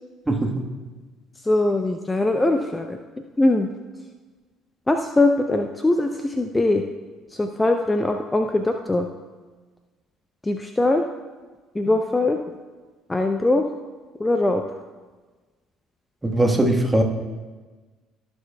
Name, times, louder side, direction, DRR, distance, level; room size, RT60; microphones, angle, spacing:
voice 1, 0.3-0.7 16.2-17.0, right 1 dB, 15° right, 4 dB, 1.3 m, -20 dB
voice 2, 1.4-3.0 3.4-3.7 4.9-6.8 7.3-9.1 10.4-11.1 11.7-12.4 13.1-13.7 14.2-14.6, left 2 dB, 15° left, 5 dB, 0.6 m, -21 dB
17.0 x 7.1 x 2.3 m, 1.3 s
figure-of-eight pair, 55°, 0 cm